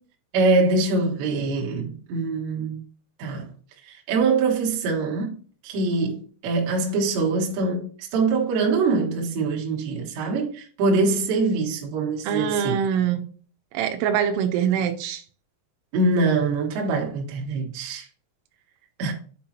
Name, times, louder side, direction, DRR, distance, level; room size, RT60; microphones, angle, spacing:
voice 1, 0.3-2.8 3.2-3.5 3.9-5.3 5.6-12.7 15.9-18.1 19.0-19.1, right 3 dB, 70° right, 3.3 m, -24 dB
voice 2, 12.2-13.2 13.7-15.2, right 8 dB, 90° right, 3.3 m, -24 dB
7.3 x 5.4 x 2.8 m
omnidirectional pair, 5.7 m